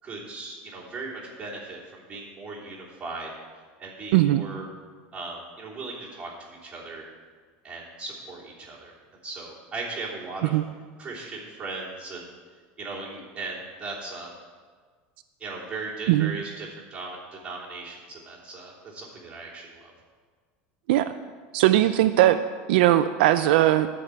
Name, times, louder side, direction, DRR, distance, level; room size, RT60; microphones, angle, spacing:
voice 1, 0.0-3.3 3.8-4.7 5.1-7.0 7.6-8.9 9.2-10.5 11.0-12.2 12.8-14.3 15.4-19.9, right 3 dB, 20° right, -6 dB, 3.2 m, -38 dB
voice 2, 4.1-4.4 10.5-10.6 16.1-16.3 20.9-21.1 21.5-22.4 22.7-23.9, right 14 dB, 80° right, 10 dB, 0.4 m, -19 dB
12.0 x 4.9 x 7.8 m, 1.5 s
supercardioid pair, 145°, 5 cm